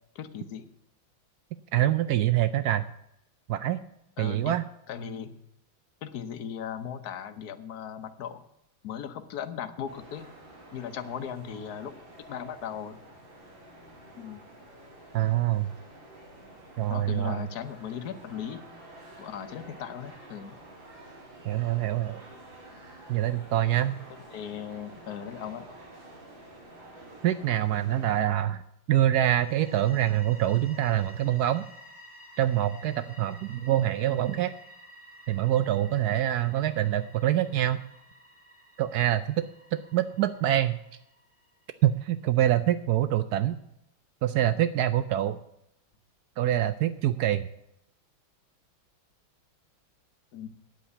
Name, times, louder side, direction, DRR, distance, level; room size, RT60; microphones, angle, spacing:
voice 1, 0.1-0.7 4.2-4.5 4.9-5.3 6.0-8.4 8.8-10.3 10.7-11.9 12.3-13.0 14.2-14.4 16.9-18.6 19.2-20.6 24.3-25.7 40.5-40.6 50.3-50.5, left 8 dB, 55° left, 9 dB, 1.3 m, -37 dB
voice 2, 1.7-2.8 3.5-3.8 4.2-4.6 15.1-15.7 16.8-17.4 21.4-22.2 23.1-24.0 27.2-28.6 28.9-31.7 32.4-34.5 35.3-37.8 38.8-40.8 41.8-43.5 44.2-45.4 46.4-47.4, right 12 dB, 90° right, 13 dB, 0.8 m, -25 dB
sound 1, 9.8-28.2, right 1 dB, 65° right, 4.2 m, -49 dB
sound 2, 29.2-41.9, equal, 25° right, 4.3 m, -52 dB
9.3 x 8.4 x 8.0 m, 0.80 s
omnidirectional pair, 2.3 m